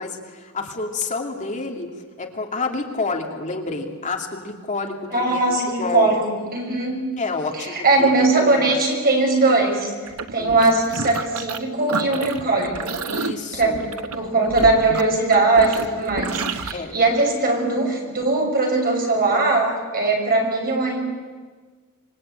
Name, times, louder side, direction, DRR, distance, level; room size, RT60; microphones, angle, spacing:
voice 1, 0.0-6.1 7.2-8.1 8.4-8.7 10.4-10.6 13.1-13.9 16.7-17.0, left 3 dB, 35° left, 2 dB, 2.5 m, -29 dB
voice 2, 5.1-7.1 7.6-9.9 10.3-12.9 13.2-13.9 14.1-21.1, right 2 dB, 45° right, 1 dB, 6.3 m, -20 dB
sound 1, 10.1-11.6 11.9-16.7, right 4 dB, 90° right, 1.2 m, -29 dB
26.0 x 23.5 x 8.9 m, 1.5 s
head